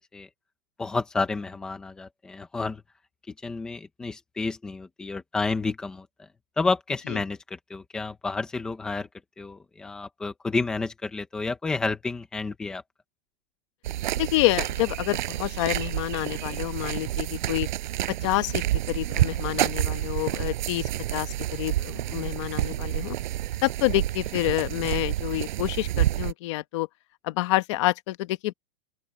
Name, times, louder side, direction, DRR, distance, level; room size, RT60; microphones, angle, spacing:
voice 1, 0.8-2.8 3.4-6.1 6.6-9.1 9.4-12.8, left 3 dB, ahead, 0.5 m, -30 dB
sound 1, 13.8-26.3, right 14 dB, 45° right, 6.7 m, -29 dB
voice 2, 14.1-17.7 18.2-23.2 23.6-26.9 27.2-28.5, left 18 dB, 30° left, 1.2 m, -28 dB
open air
supercardioid pair, 175°, 32 cm